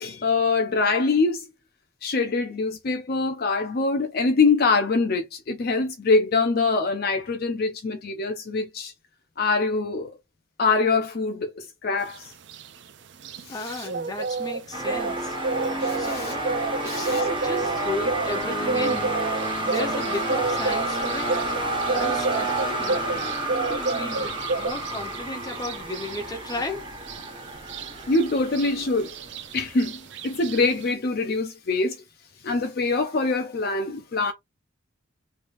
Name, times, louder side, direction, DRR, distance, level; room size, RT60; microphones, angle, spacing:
voice 1, 0.0-1.5 2.0-8.9 9.4-10.1 10.6-12.3 13.5-13.9 15.8-16.4 16.9-17.3 28.1-29.1 29.5-32.0 32.4-34.3, left 3 dB, 45° left, 0.5 m, -24 dB
sound 1, 12.1-30.9, right 4 dB, 60° right, 0.4 m, -31 dB
voice 2, 13.5-15.4 16.0-16.5 16.8-19.1 19.6-21.4 21.9-23.0 23.7-26.9, left 2 dB, 20° left, 0.8 m, -34 dB
sound 2, 14.7-29.6, right 1 dB, 25° right, 1.1 m, -30 dB
3.3 x 3.1 x 2.5 m
head